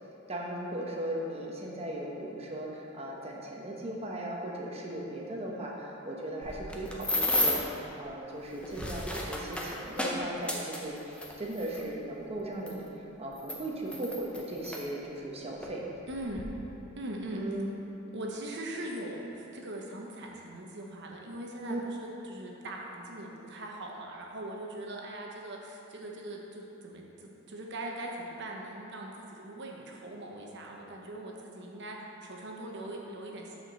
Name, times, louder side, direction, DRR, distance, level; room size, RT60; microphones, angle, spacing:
voice 1, 0.3-15.8 17.3-17.8 21.7-21.8, right 1 dB, 30° right, -2 dB, 1.0 m, -37 dB
sound 1, 6.4-7.8 8.5-11.8 12.7-12.8 13.4-14.8 15.6-15.8 16.1-16.4, left 1 dB, 5° left, 0.7 m, -32 dB
voice 2, 16.1-16.5 17.0-17.4 18.1-33.6, right 1 dB, 60° right, -1 dB, 1.0 m, -41 dB
6.4 x 5.0 x 6.2 m, 3.0 s
head